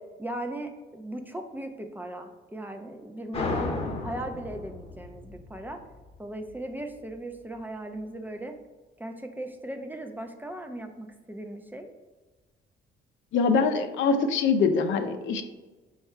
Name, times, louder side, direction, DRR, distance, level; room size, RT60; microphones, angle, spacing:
voice 1, 0.2-5.8 6.2-8.5 9.0-11.9, right 1 dB, 10° right, 5 dB, 0.4 m, -38 dB
sound 1, 3.3-6.6, left 3 dB, 30° left, 0.8 m, -34 dB
voice 2, 13.3-15.4, left 5 dB, 75° left, 7 dB, 0.5 m, -23 dB
4.3 x 2.4 x 4.3 m, 1.2 s
cardioid pair, 90°, 20 cm